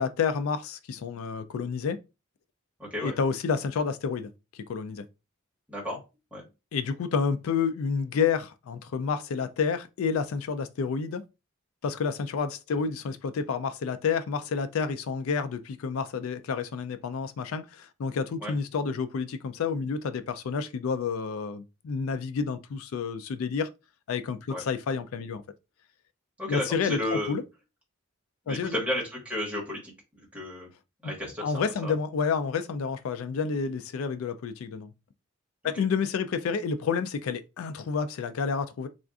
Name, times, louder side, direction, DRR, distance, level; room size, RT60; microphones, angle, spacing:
voice 1, 0.0-2.0 3.0-5.0 6.7-11.2 11.8-23.7 24.1-25.4 26.5-27.4 28.5-28.8 31.0-31.1 31.4-34.9 35.6-38.9, left 5 dB, 90° left, 0.4 m, -29 dB
voice 2, 2.8-3.2 5.7-6.0 6.3-6.5 18.4-18.5 24.5-24.6 26.4-27.4 28.5-30.7 31.0-31.9 35.8-35.9, left 1 dB, 5° right, 1.2 m, -33 dB
3.7 x 2.4 x 2.3 m
head